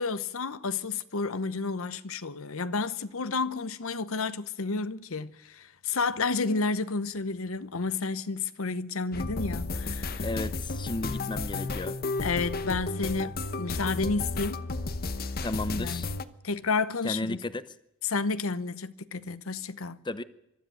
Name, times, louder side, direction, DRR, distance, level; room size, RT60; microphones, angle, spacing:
voice 1, 0.0-10.3 12.2-13.3 13.6-14.6 15.8-16.1 16.4-17.4 18.1-20.0, left 4 dB, 75° left, 0.9 m, -31 dB
sound 1, 9.1-16.2, left 3 dB, 45° left, 1.0 m, -33 dB
voice 2, 10.2-12.0 15.4-16.1 17.0-17.6 20.0-20.2, left 2 dB, 20° left, 0.7 m, -33 dB
23.5 x 13.0 x 9.0 m
head